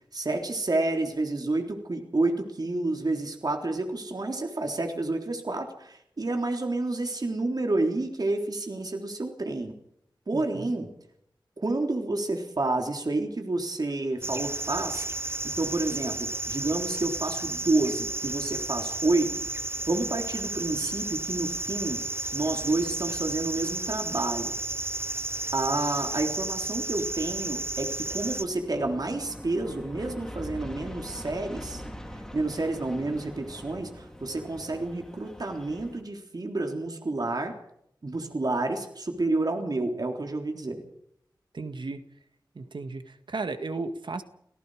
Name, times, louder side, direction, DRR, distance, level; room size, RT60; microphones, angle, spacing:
voice 1, 0.1-9.7 10.3-10.9 11.6-19.4 19.9-22.0 22.3-24.5 25.5-31.8 32.3-37.6 38.0-40.8, right 2 dB, 55° right, 3 dB, 3.6 m, -29 dB
voice 2, 10.3-10.7 41.5-42.0 42.6-44.2, right 3 dB, 75° right, 8 dB, 1.9 m, -35 dB
sound 1, 14.2-28.5, right 2 dB, 30° right, 0.8 m, -32 dB
Aircraft, 28.0-36.0, left 1 dB, 5° left, 4.3 m, -42 dB
29.0 x 18.0 x 5.0 m, 0.72 s
wide cardioid pair, 80°, 8 cm